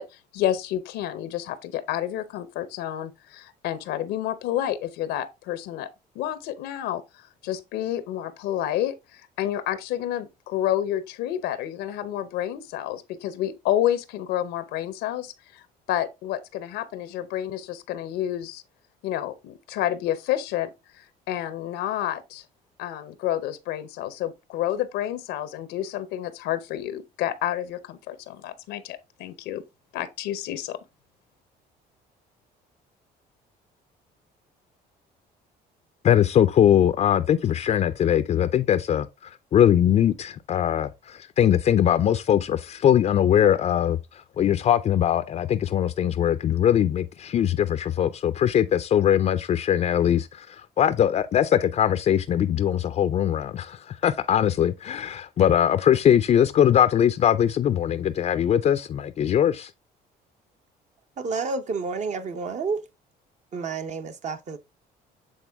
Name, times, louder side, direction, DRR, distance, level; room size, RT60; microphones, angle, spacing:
voice 1, 0.0-5.9 6.1-15.6 15.9-18.6 19.0-22.4 22.8-29.6 29.9-30.8, left 12 dB, 90° left, 0.8 m, -29 dB
voice 2, 36.0-59.7, left 10 dB, 40° left, 0.4 m, -21 dB
voice 3, 61.2-62.9 63.5-64.6, right 4 dB, 45° right, 0.8 m, -30 dB
8.1 x 3.8 x 3.5 m
cardioid pair, 110°, 17 cm